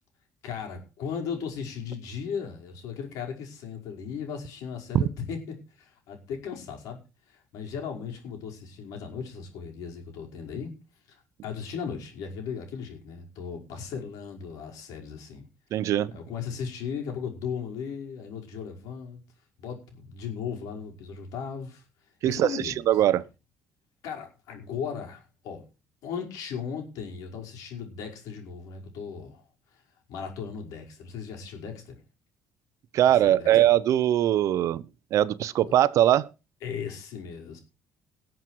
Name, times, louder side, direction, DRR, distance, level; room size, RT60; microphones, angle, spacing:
voice 1, 0.4-5.4 5.8-7.0 7.3-10.7 11.1-15.5 16.1-19.2 19.6-21.8 22.2-22.8 24.0-25.6 26.0-29.4 30.1-32.0 33.2-33.5 35.7-35.8 36.6-37.6, left 6 dB, 85° left, 5.4 m, -37 dB
voice 2, 15.7-16.1 22.2-23.2 32.9-34.8 35.1-36.3, right 12 dB, 60° right, 0.8 m, -21 dB
19.5 x 7.6 x 4.7 m
cardioid pair, 150°, 6 cm